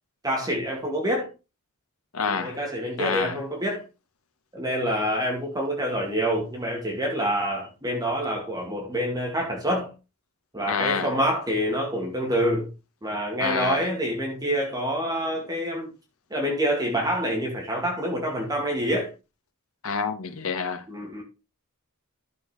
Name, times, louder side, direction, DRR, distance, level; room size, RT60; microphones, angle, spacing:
voice 1, 0.2-1.3 2.3-3.8 4.5-9.9 10.5-12.7 13.0-15.9 16.3-19.1 20.9-21.2, equal, 15° right, 2.2 m, -27 dB
voice 2, 2.1-2.6 3.0-3.4 10.7-11.1 13.4-13.8 19.8-20.9, left 5 dB, 70° left, 1.2 m, -28 dB
12.0 x 7.1 x 3.3 m
head